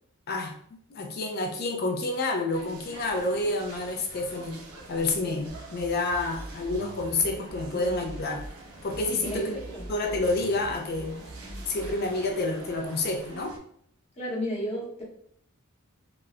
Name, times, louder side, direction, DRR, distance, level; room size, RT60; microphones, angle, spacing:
voice 1, 0.9-4.5 4.9-8.5 8.8-9.5 9.9-11.2 11.7-13.6, left 2 dB, 45° left, 3 dB, 0.5 m, -29 dB
sound 1, 2.5-13.6, right 2 dB, 80° right, 0.6 m, -46 dB
sound 2, 5.5-8.5 8.9-11.9, right 1 dB, 20° right, 0.6 m, -43 dB
voice 2, 9.2-9.8 14.2-15.0, equal, 30° left, -5 dB, 0.9 m, -33 dB
2.9 x 2.1 x 2.4 m, 0.66 s
head